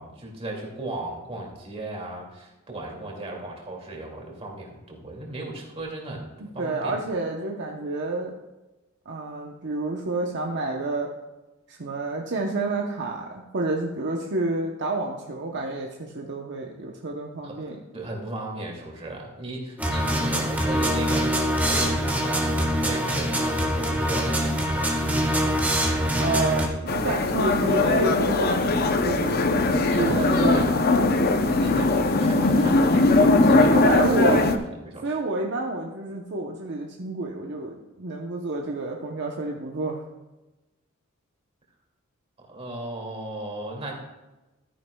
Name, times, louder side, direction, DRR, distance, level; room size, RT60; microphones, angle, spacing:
voice 1, 0.0-7.0 17.4-25.7 29.7-30.7 31.6-34.4 34.7-35.2 42.5-43.9, right 2 dB, 30° right, -1 dB, 2.3 m, -36 dB
voice 2, 6.4-8.3 9.1-11.1 11.7-17.8 26.2-29.6 30.0-30.6 30.9-31.2 33.7-34.4 35.0-40.0, right 2 dB, 55° right, 1 dB, 0.8 m, -29 dB
sound 1, 19.8-26.7, equal, 10° right, 1.4 m, -24 dB
sound 2, 26.9-34.6, left 2 dB, 45° left, 0.6 m, -20 dB
13.0 x 9.6 x 2.3 m, 1.1 s
head